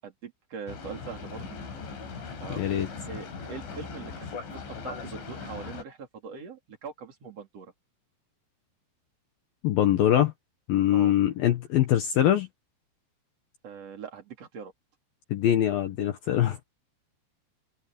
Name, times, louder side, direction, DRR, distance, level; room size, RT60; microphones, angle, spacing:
voice 1, 0.0-1.5 2.4-2.7 3.1-7.7 10.9-11.1 13.6-14.7, right 6 dB, 35° right, 3.9 m, -42 dB
Boat Water vehicle, 0.7-5.8, left 5 dB, 85° left, 7.6 m, -39 dB
voice 2, 2.6-2.9 9.6-10.3 10.7-12.5 15.3-16.6, left 11 dB, 70° left, 2.4 m, -23 dB
open air
omnidirectional pair, 5.3 m